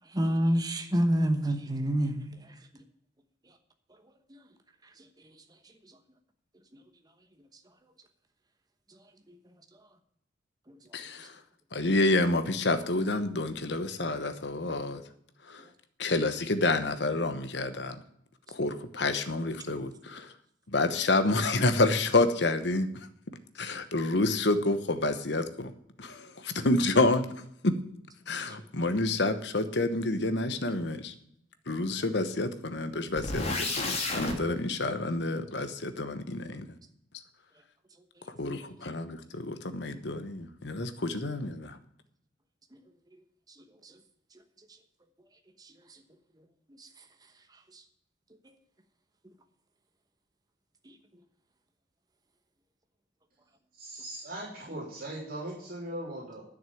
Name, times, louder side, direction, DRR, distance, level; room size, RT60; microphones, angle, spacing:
voice 1, 0.1-2.2, equal, 20° right, 6 dB, 1.0 m, -26 dB
voice 2, 10.9-11.3 11.7-15.0 15.5-15.6 16.0-18.0 18.5-20.3 20.7-22.9 23.6-25.7 26.0-27.3 27.6-27.8 28.3-31.1 31.7-36.7 38.4-41.8, left 2 dB, 65° left, 10 dB, 1.1 m, -28 dB
sound 1, 33.2-34.4, left 2 dB, 35° left, 2.5 m, -31 dB
voice 3, 53.8-56.4, right 1 dB, 50° right, -4 dB, 3.3 m, -39 dB
11.0 x 6.4 x 8.6 m, 0.73 s
head